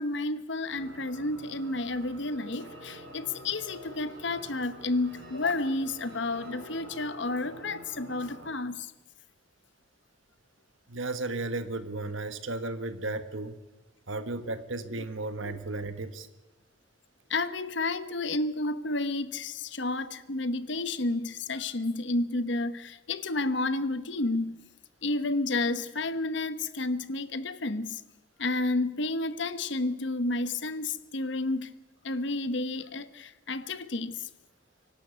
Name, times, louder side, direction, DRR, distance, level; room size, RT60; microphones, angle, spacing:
voice 1, 0.0-8.9 15.4-15.6 17.3-24.6 25.0-28.0 28.4-31.7 32.0-34.3, left 2 dB, 65° left, 1.1 m, -31 dB
sound 1, 0.7-8.5, equal, 60° right, 5.8 m, -47 dB
voice 2, 10.9-13.6 14.1-16.3, right 2 dB, 80° right, 1.5 m, -34 dB
24.5 x 12.0 x 9.6 m
head